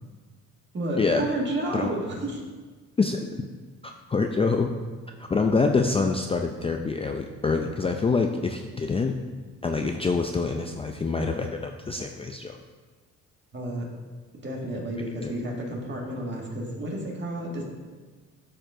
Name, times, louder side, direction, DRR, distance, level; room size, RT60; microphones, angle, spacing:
voice 1, 0.7-2.4 13.5-13.9 14.3-17.6, right 1 dB, 40° right, -1 dB, 1.8 m, -31 dB
voice 2, 3.0-3.4 3.8-4.7 5.2-9.2 9.6-12.6 15.2-15.3, left 4 dB, 20° left, 4 dB, 0.4 m, -26 dB
12.0 x 4.5 x 2.6 m, 1.4 s
cardioid pair, 90°, 30 cm